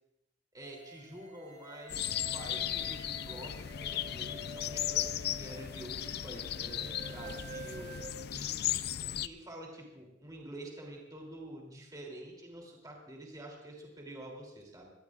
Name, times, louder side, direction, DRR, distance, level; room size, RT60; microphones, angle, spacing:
voice 1, 0.5-8.0 8.3-8.7 9.2-14.9, right 1 dB, 20° right, 0 dB, 3.0 m, -48 dB
sound 1, 0.6-8.1, equal, 45° right, 6.9 m, -48 dB
sound 2, 1.9-9.3, left 11 dB, 60° left, 0.4 m, -36 dB
24.0 x 17.5 x 2.5 m, 0.91 s
head